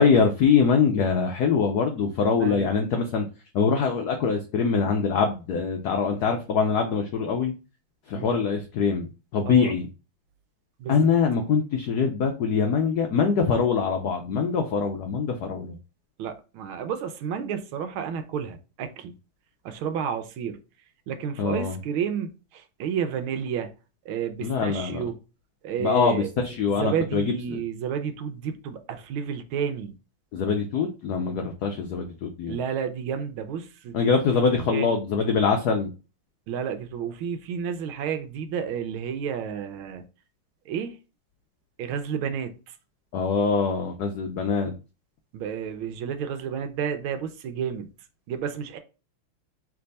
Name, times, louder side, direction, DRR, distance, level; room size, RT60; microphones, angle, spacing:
voice 1, 0.0-3.2 3.5-7.5 8.1-9.9 10.9-15.8 21.4-21.8 24.4-25.0 25.8-27.6 30.3-32.6 33.9-35.9 43.1-44.7, left 5 dB, 85° left, 0.8 m, -23 dB
voice 2, 2.3-2.7 8.1-8.4 9.5-9.7 10.8-11.1 16.2-19.1 19.6-20.6 21.1-23.7 24.0-25.1 25.6-30.0 32.5-34.1 34.7-35.0 36.5-40.0 40.7-41.0 41.8-42.8 45.3-47.9 48.3-48.8, right 7 dB, 75° right, 1.4 m, -31 dB
3.4 x 3.3 x 4.0 m
omnidirectional pair, 2.4 m